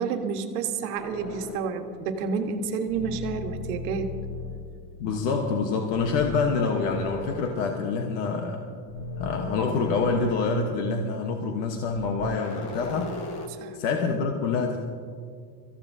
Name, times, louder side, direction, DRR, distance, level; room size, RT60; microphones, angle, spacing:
voice 1, 0.0-4.1 13.6-13.8, right 5 dB, 70° right, 5 dB, 1.5 m, -30 dB
sound 1, 1.0-2.1 2.9-4.8 5.9-8.6 8.9-11.5 11.9-13.5, left 2 dB, 35° left, 1.4 m, -37 dB
voice 2, 5.0-8.6 9.2-13.1 13.7-14.8, left 4 dB, 55° left, 3 dB, 1.2 m, -26 dB
25.5 x 15.0 x 2.7 m, 2.2 s
cardioid pair, 180°, 46 cm